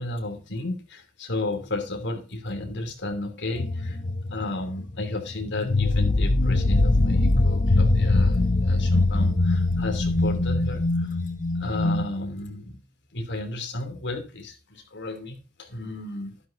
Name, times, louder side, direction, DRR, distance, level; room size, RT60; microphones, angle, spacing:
voice 1, 0.0-4.0 4.3-11.2 11.5-12.8 13.1-16.4, left 2 dB, 55° left, 5 dB, 3.0 m, -33 dB
sound 1, 3.5-12.0, left 2 dB, 35° left, 0.8 m, -22 dB
12.0 x 11.5 x 2.7 m, 0.30 s
head